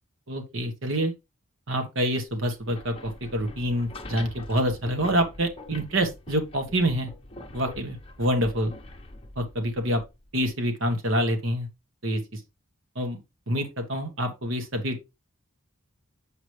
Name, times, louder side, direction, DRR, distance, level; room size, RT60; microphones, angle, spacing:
voice 1, 0.3-1.1 1.7-7.1 7.5-8.7 9.4-10.0 10.3-11.7 12.0-12.4 12.9-13.2 13.5-15.0, equal, 65° right, 1.3 m, -27 dB
sound 1, 2.5-10.5, left 2 dB, 25° left, 0.8 m, -44 dB
6.6 x 5.0 x 3.2 m
head